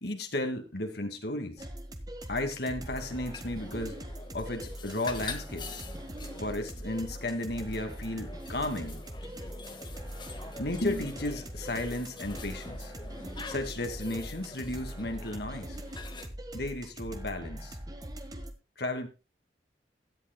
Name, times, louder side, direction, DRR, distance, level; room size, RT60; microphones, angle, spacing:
voice 1, 0.0-1.7 2.3-4.0 4.3-5.8 6.4-9.0 10.6-12.9 13.5-15.8 16.5-17.8 18.8-19.1, left 1 dB, 65° left, 6 dB, 2.3 m, -34 dB
sound 1, 1.6-18.5, right 1 dB, 20° right, 1.5 m, -42 dB
sound 2, 2.9-16.3, left 3 dB, 25° left, 1.6 m, -46 dB
16.5 x 10.5 x 2.3 m, 0.29 s
head